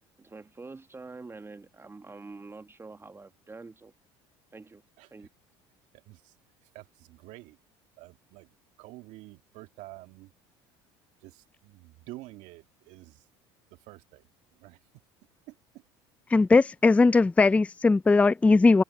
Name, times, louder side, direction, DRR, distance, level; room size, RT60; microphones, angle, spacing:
voice 1, 0.2-3.9 4.5-4.8 5.1-5.3, right 3 dB, 20° right, 1.4 m, -45 dB
voice 2, 5.9-6.3 6.6-7.6 8.0-10.3 11.2-13.3 13.7-14.3 14.6-14.8 15.5-15.6, right 19 dB, 70° right, 2.0 m, -48 dB
voice 3, 16.3-18.8, left 3 dB, 10° left, 0.3 m, -19 dB
open air
hypercardioid pair, 80°, 13 cm